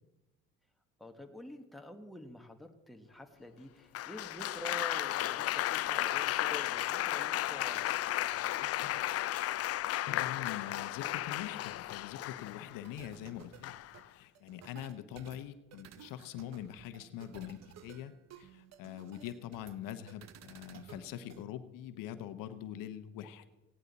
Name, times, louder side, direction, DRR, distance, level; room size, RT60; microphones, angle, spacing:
voice 1, 1.0-8.4, left 1 dB, ahead, 4 dB, 1.3 m, -48 dB
Applause, 3.9-12.8 13.6-14.0, left 14 dB, 45° left, 0.4 m, -34 dB
voice 2, 10.1-13.8 14.1-23.5, left 11 dB, 70° left, 10 dB, 0.9 m, -44 dB
sound 1, 12.9-21.4, right 10 dB, 50° right, 0.8 m, -55 dB
16.0 x 9.6 x 4.0 m, 1.1 s
supercardioid pair, 85°, 34 cm